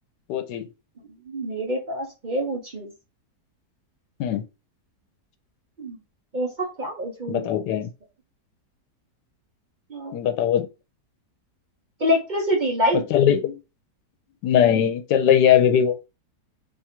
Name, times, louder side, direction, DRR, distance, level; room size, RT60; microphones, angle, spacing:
voice 1, 0.3-0.7 4.2-4.4 7.3-7.9 10.1-10.7 12.9-13.5 14.4-16.0, left 9 dB, 85° left, 1.2 m, -20 dB
voice 2, 1.3-2.9 5.8-6.0 6.3-7.5 9.9-10.2 12.0-13.0, equal, 55° right, 0.5 m, -26 dB
3.0 x 2.4 x 4.3 m
omnidirectional pair, 1.8 m